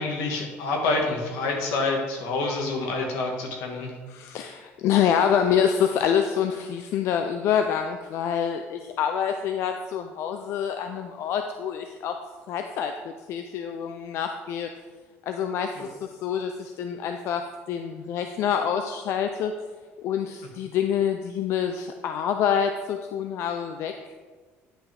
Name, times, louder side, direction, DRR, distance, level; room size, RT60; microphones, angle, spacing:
voice 1, 0.0-3.9 15.8-15.9, left 3 dB, 85° left, 1 dB, 1.6 m, -27 dB
voice 2, 4.1-12.2 12.5-14.7 15.3-19.5 20.0-24.2, left 8 dB, 65° left, 6 dB, 0.4 m, -26 dB
9.6 x 5.7 x 3.4 m, 1.4 s
cardioid pair, 125°, 5 cm